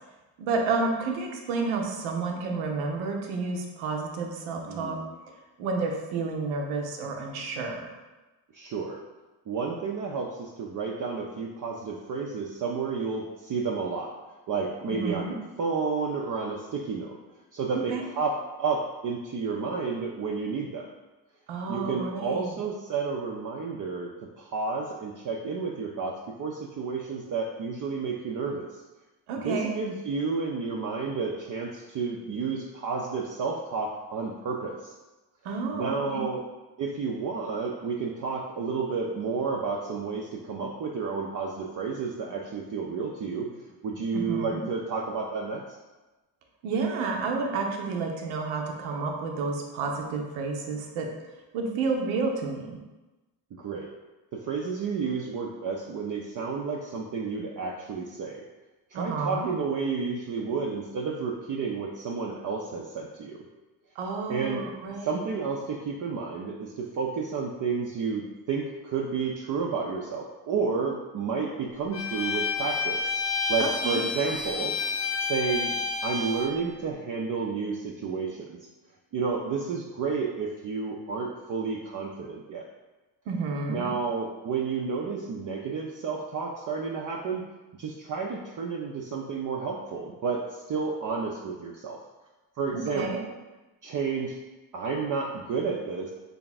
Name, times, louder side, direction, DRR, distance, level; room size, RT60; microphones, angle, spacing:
voice 1, 0.4-5.0 5.6-7.9 14.9-15.4 17.9-18.0 21.5-22.6 29.3-29.7 35.4-36.2 44.1-44.6 46.6-51.1 51.5-52.8 58.9-59.5 64.0-65.2 73.6-74.0 83.3-83.9 92.7-93.2, right 4 dB, 85° right, 2 dB, 0.7 m, -30 dB
voice 2, 4.7-5.1 8.5-9.0 9.5-14.1 14.5-17.2 17.5-20.9 21.7-28.8 29.4-34.9 35.7-36.4 36.8-43.5 43.8-45.6 53.5-53.9 54.3-58.4 58.9-63.4 64.3-64.7 65.0-73.1 73.5-74.7 75.2-75.7 76.0-78.6 79.1-82.6 83.7-87.4 87.8-92.0 92.6-93.3 93.8-94.4 94.7-96.1, right 5 dB, 40° right, -1 dB, 0.5 m, -31 dB
Bowed string instrument, 71.9-76.6, left 4 dB, 30° left, 0.5 m, -29 dB
3.4 x 2.3 x 4.0 m, 1.1 s
supercardioid pair, 60°, 48 cm